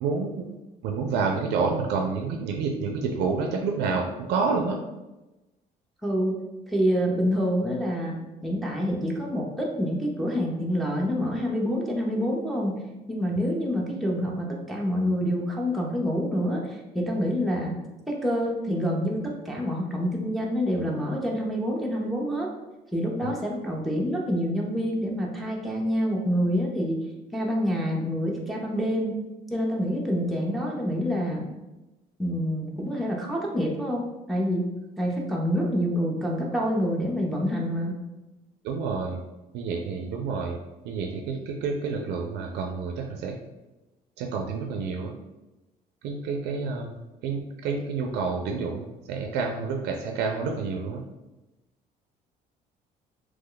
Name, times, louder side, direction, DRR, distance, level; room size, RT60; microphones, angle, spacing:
voice 1, 0.0-0.4 0.8-4.8 23.2-23.3 38.6-39.2 39.5-40.6 40.8-43.3 44.2-45.1 46.0-51.0, right 4 dB, 85° right, 2 dB, 0.4 m, -29 dB
voice 2, 6.0-6.4 6.7-12.8 13.1-17.8 18.1-22.5 22.9-27.0 27.3-29.2 29.5-31.5 32.2-34.6 35.0-38.0, equal, ahead, -3 dB, 0.6 m, -27 dB
3.0 x 2.1 x 3.7 m, 1.0 s
cardioid pair, 110°, 17 cm